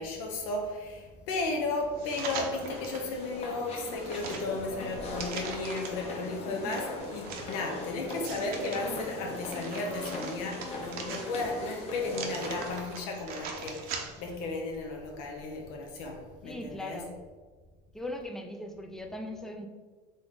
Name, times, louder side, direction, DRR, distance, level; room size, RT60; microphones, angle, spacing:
voice 1, 0.0-17.0, left 3 dB, 80° left, 0.9 m, -34 dB
sound 1, 2.0-3.1 3.6-6.1 6.7-8.8 9.3-11.6 12.1-14.4 14.7-14.8, right 5 dB, 50° right, 0.8 m, -41 dB
sound 2, 2.4-12.8, left 2 dB, 35° left, 0.8 m, -40 dB
voice 2, 6.5-6.8 16.4-17.2 17.9-19.7, left 1 dB, ahead, 0.4 m, -39 dB
3.9 x 3.3 x 3.9 m
cardioid pair, 140°, 19 cm